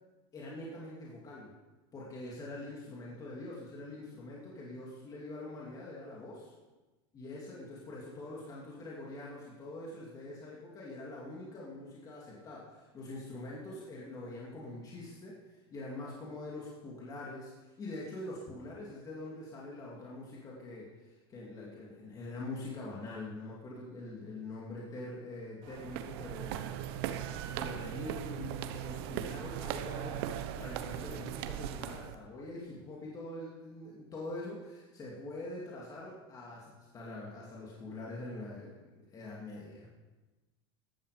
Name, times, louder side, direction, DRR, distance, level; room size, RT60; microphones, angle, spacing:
voice 1, 0.3-1.5 1.9-6.3 7.1-26.7 27.5-39.9, left 2 dB, 25° left, -4 dB, 2.7 m, -44 dB
sound 1, 25.6-32.2, right 10 dB, 65° right, 1.0 m, -38 dB
14.5 x 11.5 x 5.1 m, 1.2 s
supercardioid pair, 135°, 14 cm